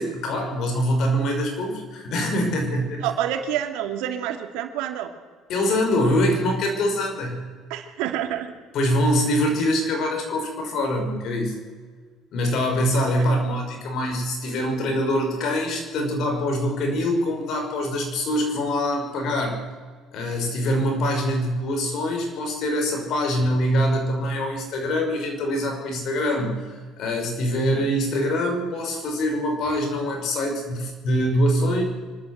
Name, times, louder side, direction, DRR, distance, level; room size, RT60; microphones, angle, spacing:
voice 1, 0.0-3.1 5.5-7.4 8.7-11.6 12.3-19.6 20.1-31.8, equal, 55° left, 3 dB, 5.9 m, -24 dB
voice 2, 3.0-5.1 7.7-8.5 27.7-27.8, right 11 dB, 85° right, 6 dB, 2.6 m, -28 dB
25.0 x 13.0 x 8.1 m, 1.5 s
cardioid pair, 125°, 0 cm